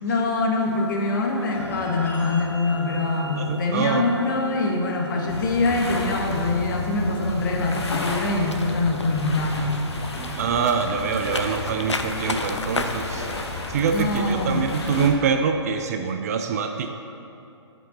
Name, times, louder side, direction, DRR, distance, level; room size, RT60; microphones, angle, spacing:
voice 1, 0.0-9.8 13.9-14.7, left 2 dB, 45° left, 1 dB, 1.2 m, -24 dB
sound 1, 0.6-15.2, left 3 dB, 80° left, 0.6 m, -38 dB
sound 2, 1.5-12.1, left 1 dB, 10° left, 1.0 m, -40 dB
voice 2, 3.4-4.0 10.2-13.3 13.7-16.9, right 6 dB, 35° right, 5 dB, 0.4 m, -25 dB
sound 3, 5.3-15.1, left 2 dB, 65° left, 1.2 m, -32 dB
10.5 x 5.4 x 3.9 m, 2.7 s
figure-of-eight pair, 130°, 15 cm